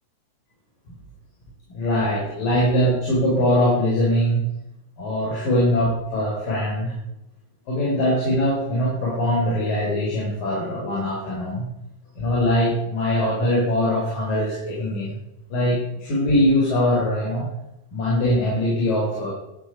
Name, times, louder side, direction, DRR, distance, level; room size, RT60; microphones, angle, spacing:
voice 1, 1.7-4.5 5.0-6.9 7.7-11.7 12.2-15.2 15.5-17.5 17.9-19.3, left 1 dB, 70° left, -4 dB, 6.6 m, -22 dB
12.5 x 12.0 x 8.0 m, 0.85 s
omnidirectional pair, 4.1 m